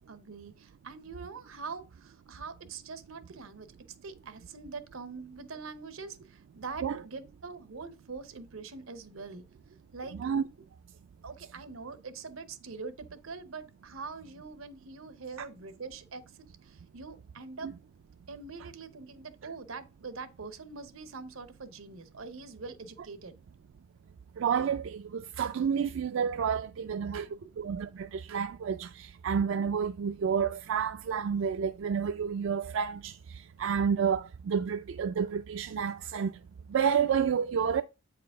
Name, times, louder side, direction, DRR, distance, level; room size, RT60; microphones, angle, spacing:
voice 1, 0.1-3.7 4.0-10.3 11.2-16.2 16.6-17.7 18.3-23.3 26.8-27.5, right 4 dB, 90° right, 0.9 m, -44 dB
voice 2, 24.4-27.3 27.6-36.3 36.7-37.8, right 7 dB, 70° right, 0.3 m, -30 dB
8.2 x 4.8 x 3.6 m
head